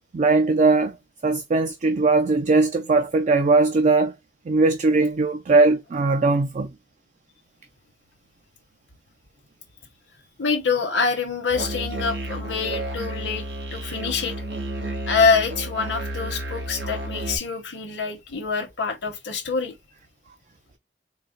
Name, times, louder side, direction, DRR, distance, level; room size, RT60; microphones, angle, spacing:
voice 1, 0.1-1.0 1.2-4.1 4.5-6.7, right 3 dB, 40° right, 0.4 m, -19 dB
voice 2, 10.4-13.4 13.7-14.3 15.1-19.7, left 5 dB, 90° left, 1.0 m, -25 dB
Musical instrument, 11.5-17.4, right 1 dB, 85° right, 1.1 m, -31 dB
4.1 x 2.0 x 3.7 m
head